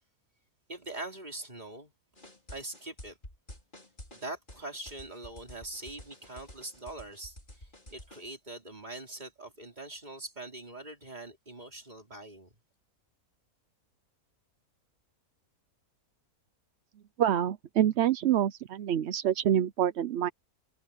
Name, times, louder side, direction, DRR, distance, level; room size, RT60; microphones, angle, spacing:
voice 1, 0.7-1.9 2.5-3.2 4.1-12.5, right 2 dB, 30° right, 4.5 m, -43 dB
sound 1, 2.2-8.3, left 1 dB, 35° left, 5.1 m, -50 dB
voice 2, 17.2-20.3, right 10 dB, 60° right, 0.8 m, -26 dB
omnidirectional pair, 1.5 m